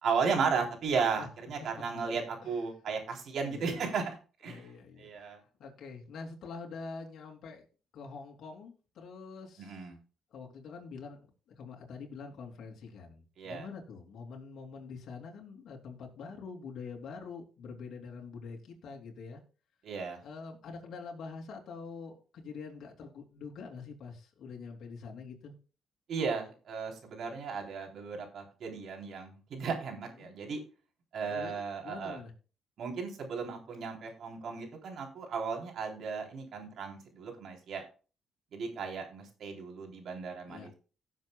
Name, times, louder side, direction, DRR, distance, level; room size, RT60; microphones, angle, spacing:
voice 1, 0.0-4.2 4.4-4.7 5.0-5.4 9.6-10.0 13.4-13.7 19.8-20.2 26.1-30.6 31.1-32.2 32.8-37.8 38.5-40.7, right 5 dB, 65° right, 2 dB, 3.6 m, -35 dB
voice 2, 3.5-3.9 4.5-5.3 5.6-7.6 7.9-9.9 10.3-11.2 11.6-19.4 20.2-25.5 30.2-30.3 31.3-32.3 40.5-40.7, left 5 dB, 70° left, 0 dB, 3.0 m, -45 dB
17.0 x 7.5 x 2.3 m, 0.35 s
cardioid pair, 90°, 0 cm